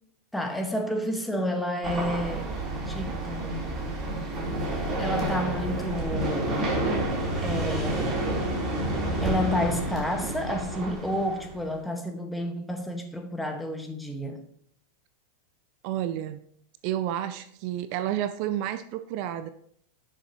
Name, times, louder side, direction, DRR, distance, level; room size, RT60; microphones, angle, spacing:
voice 1, 0.3-2.6 2.9-3.6 4.7-6.6 7.4-8.2 9.2-14.4, equal, 5° left, 1.6 m, -30 dB
sound 1, 1.8-11.7, right 1 dB, 30° right, 3.8 m, -29 dB
voice 2, 15.8-16.4 16.8-19.5, right 12 dB, 55° right, 0.5 m, -30 dB
11.0 x 6.7 x 3.1 m
hypercardioid pair, 100°, 0 cm